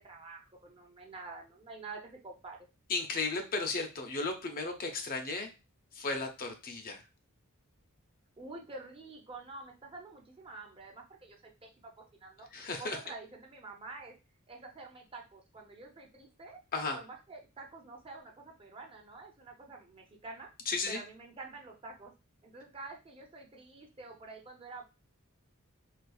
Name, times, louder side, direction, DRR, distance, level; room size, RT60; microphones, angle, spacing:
voice 1, 0.0-2.7 8.4-12.5 12.8-14.1 14.5-16.6 16.9-20.5 20.9-22.1 22.4-24.8, right 3 dB, 25° right, 1 dB, 0.6 m, -48 dB
voice 2, 2.9-5.5 5.9-7.0 12.5-13.0 16.7-17.0 20.7-21.0, left 3 dB, 45° left, 5 dB, 0.6 m, -34 dB
4.1 x 2.4 x 2.3 m, 0.28 s
head